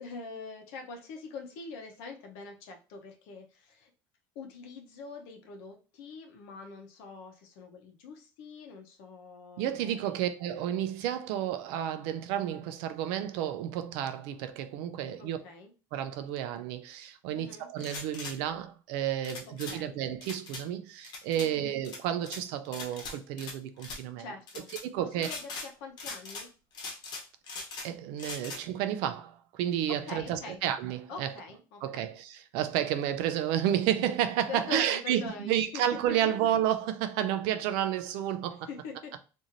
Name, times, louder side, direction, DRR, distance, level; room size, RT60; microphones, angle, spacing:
voice 1, 0.0-3.9 4.3-10.0 15.2-15.7 17.3-17.7 19.7-20.0 21.4-21.7 24.2-24.7 25.0-26.5 29.9-30.6 31.1-32.1 34.5-36.3 38.7-39.2, left 4 dB, 90° left, 0.8 m, -44 dB
voice 2, 9.6-15.4 15.9-24.3 24.8-25.3 27.8-31.3 31.8-38.7, right 10 dB, 85° right, 0.4 m, -31 dB
sound 1, 17.8-18.4 19.2-19.8 20.2-20.6 21.0-21.5 21.8-22.4 22.7-23.5 23.8-24.0 24.5-24.8 25.2-25.7 26.0-26.5 26.7-27.9 28.2-28.6, left 3 dB, 55° left, 0.9 m, -40 dB
3.0 x 2.6 x 2.5 m
cardioid pair, 125°, 9 cm